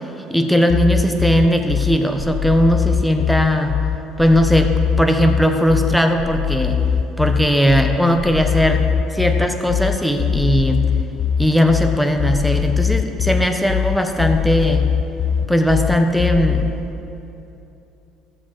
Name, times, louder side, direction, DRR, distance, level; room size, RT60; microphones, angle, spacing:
voice 1, 0.3-3.8 4.2-4.7 5.0-6.8 7.2-8.8 9.1-10.8 11.4-14.9 15.5-16.7, equal, ahead, 4 dB, 1.1 m, -18 dB
sound 1, 0.7-16.7, left 8 dB, 55° left, 0.4 m, -21 dB
13.5 x 7.2 x 4.5 m, 2.9 s
hypercardioid pair, 65°, 0 cm